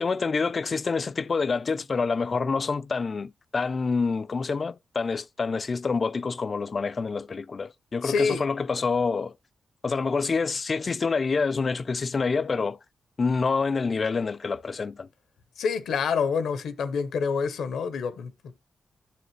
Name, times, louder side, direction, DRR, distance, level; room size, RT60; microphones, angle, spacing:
voice 1, 0.0-9.3 9.8-12.8 13.2-15.1, left 4 dB, 50° left, 0.4 m, -27 dB
voice 2, 8.0-8.4 15.6-18.5, left 5 dB, 85° left, 1.0 m, -27 dB
8.5 x 6.8 x 3.1 m
cardioid pair, 55°, 0 cm